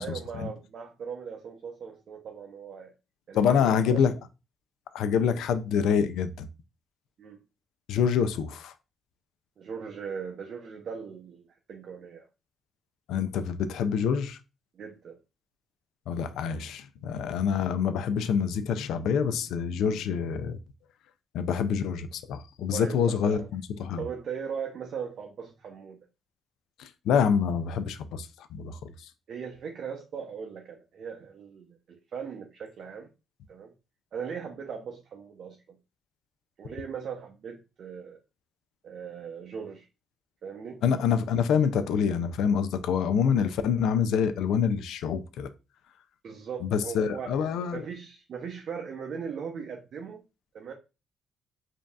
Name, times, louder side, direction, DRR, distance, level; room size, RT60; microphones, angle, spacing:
voice 1, 0.0-2.9 3.3-4.0 7.2-7.4 9.6-12.3 14.7-15.2 22.7-23.5 24.0-26.0 29.3-33.1 33.5-33.7 34.1-35.8 36.6-38.2 38.8-39.9 40.4-40.8 46.2-47.3 47.7-50.2 50.5-50.7, right 6 dB, 60° right, 0.6 m, -39 dB
voice 2, 3.3-4.1 4.9-6.5 7.9-8.7 13.1-14.4 16.1-20.6 21.3-24.0 26.8-28.9 40.8-45.5 46.6-47.8, left 7 dB, 85° left, 0.4 m, -26 dB
5.2 x 2.7 x 2.3 m
cardioid pair, 90°, 0 cm